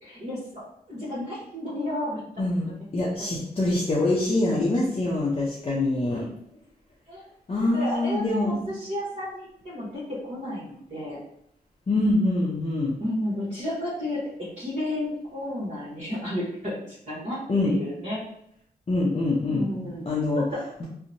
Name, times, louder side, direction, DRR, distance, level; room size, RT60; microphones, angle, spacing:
voice 1, 0.0-0.4 0.9-2.2 2.5-2.8 7.1-7.2 7.6-11.2 13.0-18.2 19.5-20.1 20.5-20.6, left 1 dB, 45° right, -9 dB, 1.1 m, -32 dB
voice 2, 2.4-6.3 7.5-8.7 11.9-13.0 17.5-17.7 18.9-19.7 20.1-20.4, left 2 dB, 35° left, -5 dB, 0.6 m, -24 dB
2.7 x 2.1 x 2.6 m, 0.71 s
cardioid pair, 55°, 17 cm